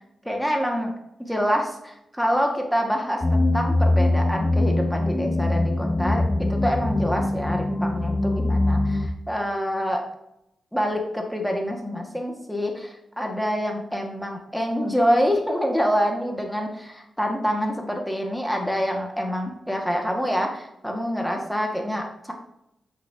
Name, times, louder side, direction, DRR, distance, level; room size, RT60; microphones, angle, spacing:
voice 1, 0.2-0.9 1.2-10.0 10.7-22.3, equal, ahead, 1 dB, 2.2 m, -26 dB
Distant zebra B, 3.2-9.1, left 2 dB, 25° left, 0.8 m, -22 dB
8.5 x 6.5 x 3.0 m, 0.81 s
cardioid pair, 65°, 0 cm